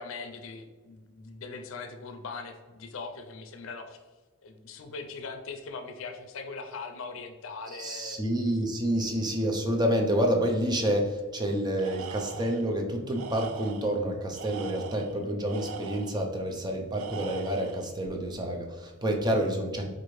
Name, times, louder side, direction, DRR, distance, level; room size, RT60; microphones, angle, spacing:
voice 1, 0.0-4.0 4.4-8.2 19.3-19.5, left 4 dB, 65° left, 6 dB, 0.5 m, -40 dB
voice 2, 7.8-19.9, right 1 dB, 20° right, 2 dB, 0.5 m, -28 dB
Tools, 11.8-12.7 13.1-14.0 14.3-16.3 16.9-17.9, right 7 dB, 80° right, 0.3 m, -41 dB
4.5 x 2.5 x 3.1 m, 1.3 s
head